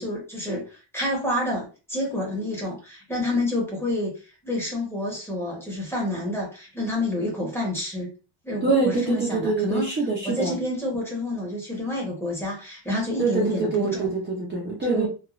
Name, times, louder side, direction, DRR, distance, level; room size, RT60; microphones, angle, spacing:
voice 1, 0.0-4.1 4.4-8.1 8.4-9.9 10.2-14.1 14.8-15.1, left 1 dB, 5° left, 0.8 m, -28 dB
voice 2, 8.6-10.6 13.2-15.1, right 3 dB, 25° right, 0.5 m, -24 dB
3.1 x 2.2 x 2.3 m
wide cardioid pair, 175°, 50 cm